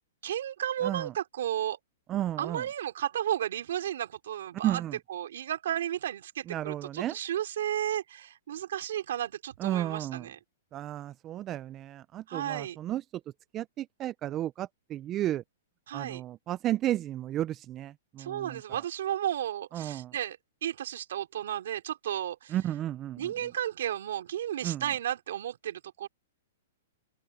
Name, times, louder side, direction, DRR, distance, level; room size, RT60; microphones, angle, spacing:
voice 1, 0.2-1.8 2.4-4.8 5.1-10.4 12.3-12.8 15.9-16.2 18.2-22.6 23.2-26.1, right 11 dB, 70° right, 2.8 m, -33 dB
voice 2, 2.1-2.6 4.6-5.0 6.5-7.2 9.6-10.3 10.7-13.0 13.5-15.4 15.9-18.8 19.7-20.1 22.5-23.3 24.6-24.8, right 13 dB, 25° right, 0.4 m, -33 dB
hypercardioid pair, 140°, 0 cm